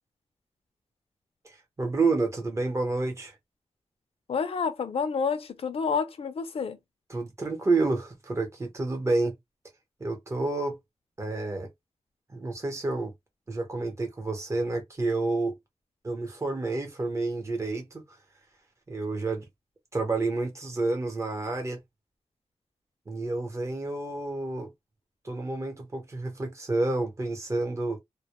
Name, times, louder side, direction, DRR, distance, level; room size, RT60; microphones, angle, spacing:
voice 1, 1.4-3.3 7.1-9.4 10.0-10.8 11.2-11.7 12.3-13.1 13.5-15.5 16.0-18.0 18.9-19.5 19.9-21.8 23.1-24.7 25.2-28.0, right 3 dB, 25° right, 0.9 m, -29 dB
voice 2, 4.3-6.8, left 5 dB, 55° left, 0.5 m, -29 dB
2.1 x 2.1 x 2.9 m
wide cardioid pair, 170°, 11 cm